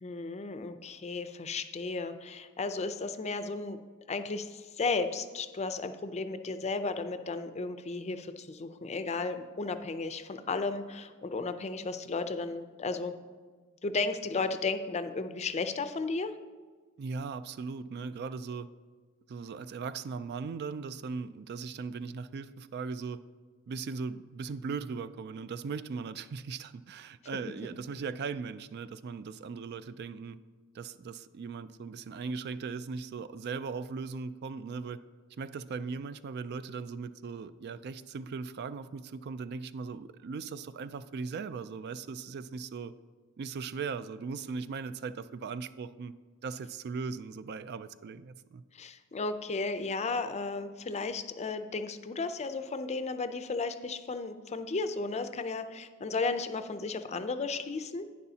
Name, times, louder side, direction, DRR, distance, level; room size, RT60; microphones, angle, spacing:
voice 1, 0.0-3.8 4.1-13.1 13.8-16.3 48.7-58.1, left 3 dB, 30° left, 10 dB, 0.5 m, -34 dB
voice 2, 17.0-18.7 19.3-23.2 23.7-30.4 30.7-35.0 35.4-42.9 43.4-46.1 46.4-48.6, right 5 dB, 50° right, 13 dB, 0.3 m, -38 dB
11.0 x 9.5 x 2.8 m, 1.4 s
head